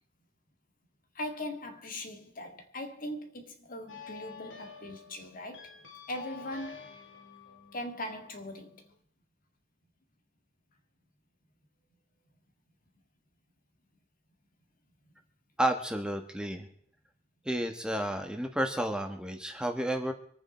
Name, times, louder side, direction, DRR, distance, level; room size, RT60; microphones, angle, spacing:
voice 1, 1.1-5.8 6.1-6.9 7.7-8.9, left 1 dB, 45° left, 2.0 m, -40 dB
sound 1, 3.9-9.0, left 6 dB, 75° left, 2.1 m, -49 dB
voice 2, 15.6-16.7 17.4-20.1, right 1 dB, 5° right, 1.4 m, -31 dB
25.5 x 8.9 x 4.3 m
head